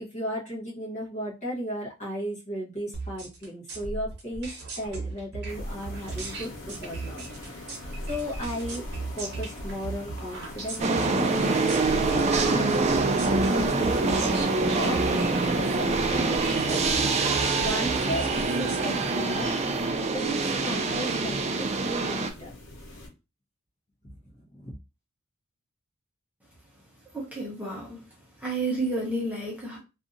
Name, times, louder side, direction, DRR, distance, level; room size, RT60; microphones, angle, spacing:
voice 1, 0.0-7.7 8.1-8.8 9.2-11.6 12.1-16.9 17.5-19.5 20.1-22.5 24.0-24.8, equal, 35° left, 1.0 m, -35 dB
sound 1, 2.9-18.9, right 3 dB, 55° right, 0.9 m, -37 dB
sound 2, 5.5-23.1, left 1 dB, 85° left, 0.9 m, -42 dB
sound 3, 10.8-22.3, right 3 dB, 30° right, 0.4 m, -25 dB
voice 2, 27.1-28.0 28.4-29.8, right 2 dB, 5° right, 0.8 m, -31 dB
2.6 x 2.5 x 2.5 m
head